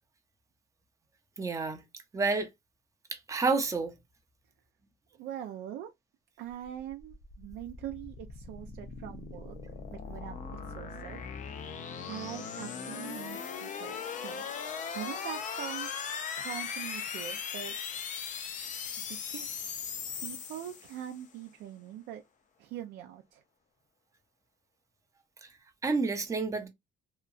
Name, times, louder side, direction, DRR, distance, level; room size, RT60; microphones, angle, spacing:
voice 1, 1.4-1.8 2.1-2.5 3.3-3.9 25.8-26.7, right 4 dB, 20° right, 0.6 m, -29 dB
voice 2, 5.2-5.9 6.4-9.6 9.9-10.5 10.7-11.2 12.1-14.4 14.9-18.0 19.0-19.6 20.2-22.2 22.6-23.4, right 11 dB, 80° right, 0.4 m, -43 dB
sound 1, 6.7-21.2, left 6 dB, 50° left, 0.5 m, -39 dB
2.8 x 2.3 x 2.4 m
cardioid pair, 110°, 17 cm